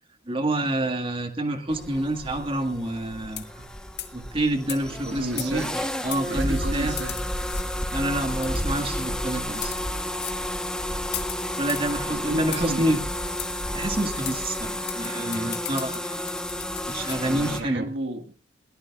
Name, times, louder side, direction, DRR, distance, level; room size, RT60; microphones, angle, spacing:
voice 1, 0.3-3.6 4.1-5.6 6.0-6.9 7.9-9.7 11.6-13.0 13.7-16.2 16.9-17.9, right 1 dB, 30° right, 1.8 m, -27 dB
sound 1, 1.7-17.6, left 1 dB, 5° left, 1.1 m, -31 dB
sound 2, 3.3-3.6 4.0-4.2 4.7-4.8 5.4-5.7 6.1-6.2 7.0-7.6 8.4-8.8 9.5-9.8 10.2-10.4 11.1-11.9 12.5-12.7 13.4-13.5 13.8-13.9 14.2-14.4 14.9-17.2, left 12 dB, 60° left, 1.9 m, -36 dB
voice 2, 5.0-5.9 6.3-7.3 12.0-13.0 17.2-18.3, right 1 dB, 75° right, 1.7 m, -33 dB
21.5 x 18.5 x 2.4 m
head